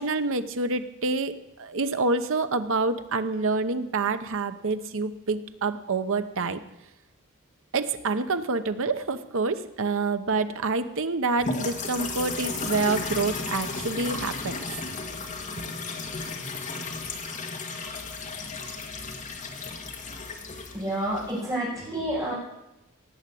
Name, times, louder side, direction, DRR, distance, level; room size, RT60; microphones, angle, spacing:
voice 1, 0.0-6.6 7.7-14.6, right 3 dB, 65° right, 10 dB, 0.9 m, -27 dB
sound 1, 11.4-21.5, left 3 dB, 35° left, 1.8 m, -34 dB
voice 2, 20.4-22.3, right 1 dB, 15° right, -9 dB, 5.6 m, -30 dB
18.0 x 7.4 x 8.4 m, 0.92 s
head